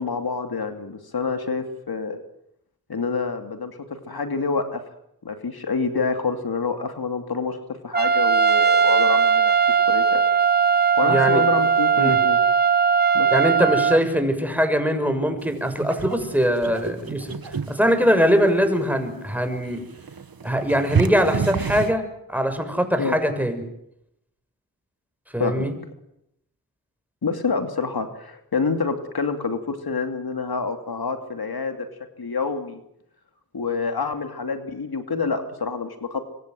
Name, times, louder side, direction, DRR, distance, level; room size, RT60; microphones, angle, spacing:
voice 1, 0.0-2.2 2.9-4.8 5.2-7.6 7.8-10.2 11.0-12.4 13.1-13.3 23.0-23.2 25.4-25.7 27.2-31.8 32.2-32.8 33.5-36.2, left 4 dB, 80° left, 7 dB, 2.8 m, -27 dB
Trumpet, 7.9-14.0, right 6 dB, 25° right, 2.3 m, -19 dB
voice 2, 11.0-11.4 12.0-12.2 13.3-19.8 20.4-22.0 22.3-23.6 25.3-25.7, equal, 5° right, 7 dB, 6.5 m, -22 dB
sound 1, 15.4-21.9, right 6 dB, 70° right, 1.5 m, -30 dB
26.0 x 24.0 x 7.8 m, 0.79 s
cardioid pair, 45°, 37 cm